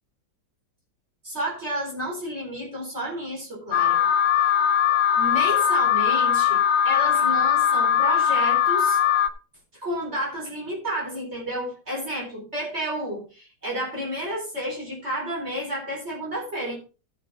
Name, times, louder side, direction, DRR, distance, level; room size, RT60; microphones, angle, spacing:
voice 1, 1.2-4.0 4.4-4.5 5.2-6.6 6.8-9.0 9.7-16.8, right 1 dB, 35° right, -3 dB, 4.6 m, -31 dB
Alarm, 3.7-9.3, left 9 dB, 85° left, 1.4 m, -20 dB
12.5 x 7.0 x 4.1 m, 0.33 s
omnidirectional pair, 1.9 m